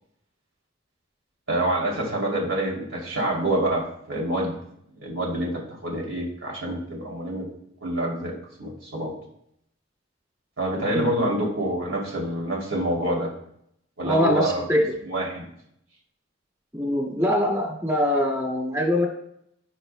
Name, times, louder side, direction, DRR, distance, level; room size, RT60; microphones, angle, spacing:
voice 1, 1.5-4.6 4.9-7.5 7.8-9.1 10.6-13.3 14.0-14.6 15.0-15.5, right 1 dB, 90° right, -2 dB, 2.9 m, -27 dB
voice 2, 10.9-11.3 14.0-14.8 16.7-19.1, left 1 dB, 20° right, -4 dB, 2.1 m, -23 dB
16.5 x 5.7 x 2.2 m, 0.72 s
head